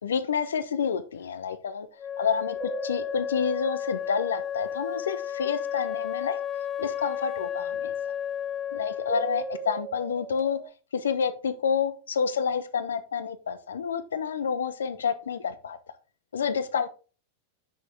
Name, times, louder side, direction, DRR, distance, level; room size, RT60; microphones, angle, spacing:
voice 1, 0.0-1.9 2.2-6.4 6.8-7.9 8.7-10.6 10.9-15.8 16.3-16.9, left 6 dB, 65° left, 0.9 m, -29 dB
Wind instrument woodwind instrument, 2.0-9.7, left 9 dB, 20° left, 0.5 m, -33 dB
sound 1, 2.6-5.0 9.1-10.7, right 7 dB, 25° right, 0.5 m, -39 dB
8.8 x 6.3 x 3.4 m
figure-of-eight pair, 90°, 0 cm